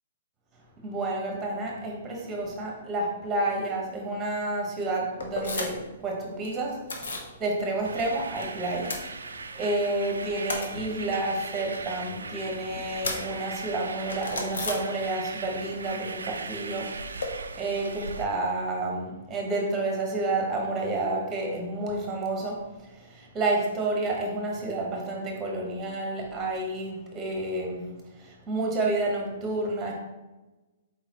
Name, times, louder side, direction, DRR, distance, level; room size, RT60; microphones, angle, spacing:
voice 1, 0.8-8.9 9.3-27.8 28.1-29.9, right 2 dB, 20° right, -1 dB, 1.2 m, -30 dB
sound 1, 5.2-6.0 6.2-7.3 7.7-8.4 8.7-9.7 10.0-15.4 15.7-17.3, left 2 dB, 75° left, 0.9 m, -36 dB
sound 2, 7.8-18.2, right 4 dB, 85° right, 0.3 m, -39 dB
4.4 x 3.9 x 3.0 m, 1.1 s
hypercardioid pair, 130°, 0 cm